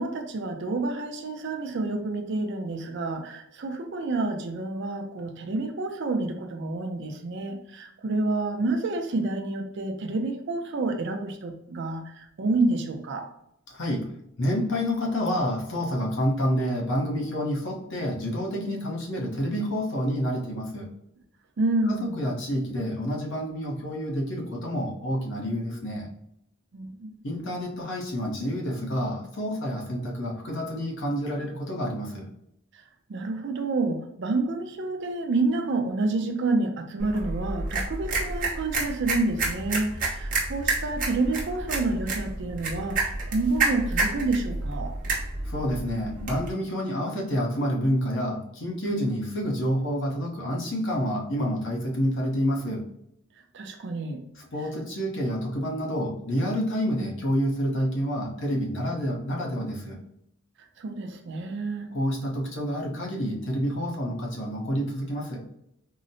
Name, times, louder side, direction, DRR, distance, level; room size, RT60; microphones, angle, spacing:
voice 1, 0.0-13.3 21.6-22.2 26.7-27.1 33.1-44.9 53.5-54.2 60.8-61.9, right 2 dB, 55° right, 5 dB, 0.4 m, -29 dB
voice 2, 13.7-14.1 14.4-20.9 21.9-26.1 27.2-32.3 45.4-52.9 54.5-60.0 61.9-65.5, equal, 60° left, 0 dB, 0.7 m, -28 dB
sound 1, 37.0-46.5, right 3 dB, 40° right, 0.9 m, -30 dB
3.8 x 2.0 x 2.6 m, 0.76 s
head